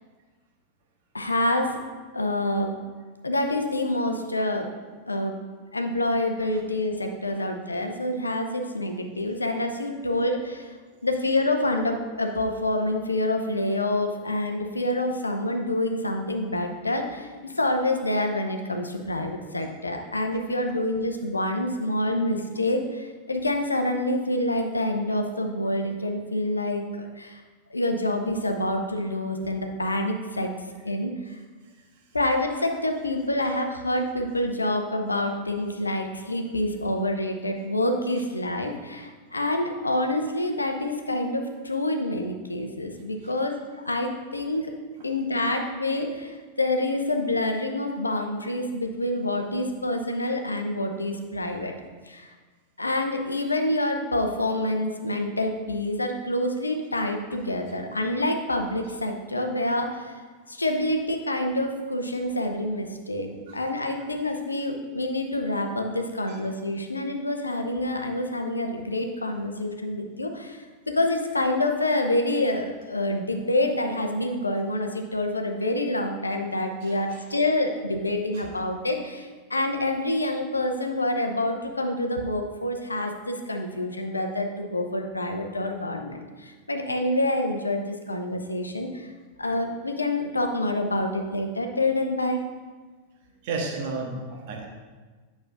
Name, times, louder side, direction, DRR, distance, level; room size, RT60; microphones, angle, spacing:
voice 1, 1.1-1.8 2.1-2.8 3.2-4.7 5.1-5.4 5.7-10.7 11.0-27.4 27.7-30.5 30.8-31.4 32.1-44.7 45.0-51.7 52.1-52.3 52.8-60.2 60.5-89.1 89.4-92.4, left 1 dB, 80° left, 4 dB, 0.6 m, -27 dB
voice 2, 31.6-32.0 43.2-43.3 45.0-45.1 62.3-62.4 63.5-63.6 66.3-66.4 76.8-77.2 78.3-78.4 93.4-94.6, right 3 dB, 50° right, 0 dB, 1.3 m, -35 dB
8.8 x 6.0 x 2.5 m, 1.4 s
figure-of-eight pair, 90°, 0 cm